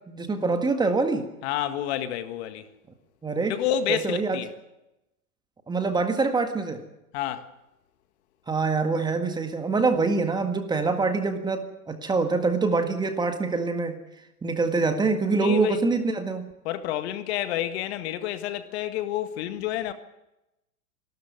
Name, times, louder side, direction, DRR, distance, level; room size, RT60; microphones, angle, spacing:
voice 1, 0.1-1.3 3.2-3.6 3.9-4.4 5.7-6.8 8.5-14.0 14.4-16.5, right 4 dB, 10° right, 1.7 m, -25 dB
voice 2, 1.4-2.7 3.5-4.5 7.1-7.4 15.4-15.8 16.7-19.9, left 11 dB, 45° left, 1.8 m, -29 dB
25.5 x 13.0 x 9.6 m
hypercardioid pair, 140°, 45 cm